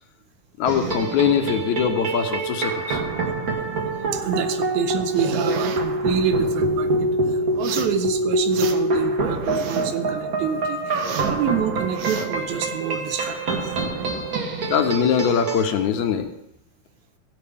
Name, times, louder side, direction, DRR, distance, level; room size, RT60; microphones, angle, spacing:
voice 1, 0.6-3.0 14.7-16.3, left 8 dB, 90° left, 6 dB, 2.3 m, -22 dB
sound 1, 0.7-15.6, right 2 dB, 50° right, 1.2 m, -25 dB
voice 2, 4.1-13.7, right 8 dB, 85° right, 6 dB, 2.2 m, -27 dB
sound 2, 5.1-5.8 7.6-8.0 8.3-9.0 9.3-10.0 10.4-11.4 11.8-12.3, right 7 dB, 70° right, 1.7 m, -31 dB
16.0 x 7.7 x 3.5 m, 0.78 s
omnidirectional pair, 3.3 m